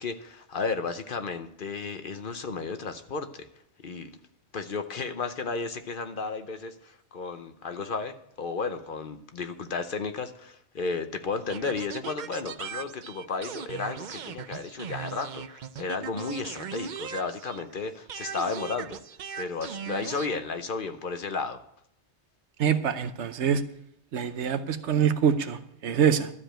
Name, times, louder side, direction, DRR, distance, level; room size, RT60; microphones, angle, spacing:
voice 1, 0.0-3.5 3.8-4.1 4.5-19.0 19.4-21.6, left 4 dB, 55° left, 9 dB, 0.9 m, -33 dB
sound 1, 11.5-17.8 18.1-20.3, right 8 dB, 55° right, 0.5 m, -39 dB
voice 2, 22.6-23.6 24.1-26.3, right 8 dB, 75° right, 11 dB, 1.1 m, -25 dB
12.5 x 5.0 x 8.9 m, 0.73 s
omnidirectional pair, 1.2 m